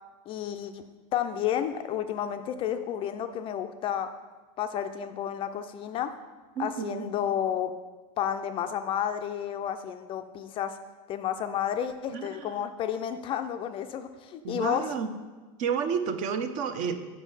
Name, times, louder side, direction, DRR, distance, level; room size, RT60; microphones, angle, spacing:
voice 1, 0.3-0.8 1.1-4.2 4.6-6.2 6.6-7.8 8.2-10.8 11.1-15.0, left 9 dB, 30° left, 8 dB, 0.3 m, -31 dB
voice 2, 6.6-7.1 12.1-12.5 14.4-15.1 15.6-17.0, right 6 dB, 45° right, 9 dB, 0.6 m, -30 dB
6.2 x 5.4 x 5.5 m, 1.3 s
supercardioid pair, 135°, 18 cm